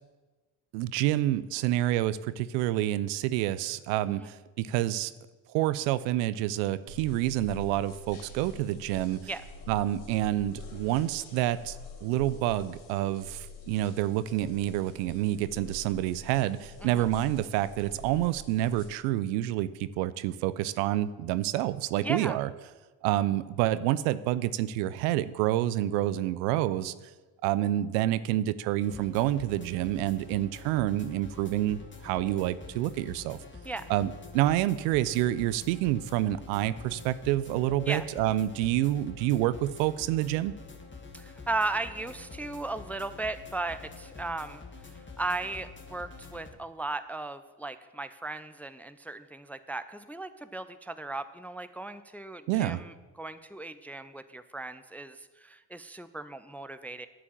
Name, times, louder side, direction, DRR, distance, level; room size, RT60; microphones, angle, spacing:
voice 1, 0.7-5.1 5.5-9.2 9.7-11.8 12.0-22.5 23.0-26.9 27.4-33.4 33.9-40.5 52.5-52.8, right 14 dB, 80° right, 16 dB, 0.6 m, -28 dB
sound 1, 6.9-18.9, left 2 dB, 80° left, 2.5 m, -46 dB
voice 2, 22.0-22.4 33.6-33.9 37.9-38.0 41.1-57.1, right 2 dB, 5° left, 12 dB, 0.3 m, -36 dB
sound 2, 28.8-46.5, left 4 dB, 20° left, 1.8 m, -46 dB
9.9 x 4.9 x 7.5 m, 1.2 s
hypercardioid pair, 50°, 50 cm